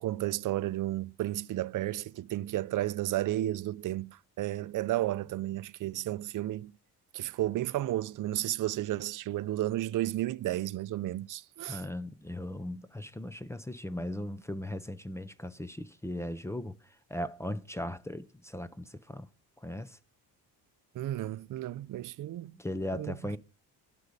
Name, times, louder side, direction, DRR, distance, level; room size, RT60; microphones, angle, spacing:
voice 1, 0.0-6.7 7.1-11.8 20.9-22.5 22.9-23.3, right 14 dB, 50° right, 0.5 m, -33 dB
voice 2, 11.7-16.7 17.1-19.3 19.6-20.0 22.5-23.4, left 1 dB, 5° left, 0.5 m, -38 dB
11.5 x 5.2 x 8.2 m
cardioid pair, 135°, 40 cm